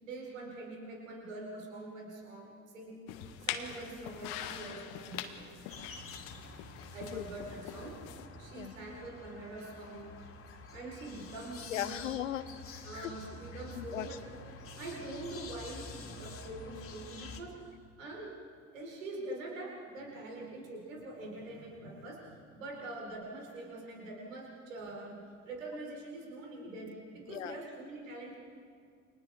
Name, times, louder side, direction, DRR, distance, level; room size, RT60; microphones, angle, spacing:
voice 1, 0.0-3.0 3.4-5.5 6.9-8.0 8.4-10.1 10.7-12.0 12.8-14.2 14.8-18.3 18.7-28.4, right 2 dB, 75° right, -2 dB, 4.5 m, -44 dB
sound 1, 3.1-8.3, left 10 dB, 60° left, 1.5 m, -43 dB
sound 2, 5.7-17.4, left 3 dB, 35° left, 2.7 m, -48 dB
voice 2, 11.7-13.1 13.7-14.1 27.3-27.6, left 12 dB, 75° left, 15 dB, 0.8 m, -38 dB
29.5 x 25.5 x 3.6 m, 2.2 s
figure-of-eight pair, 60°, 39 cm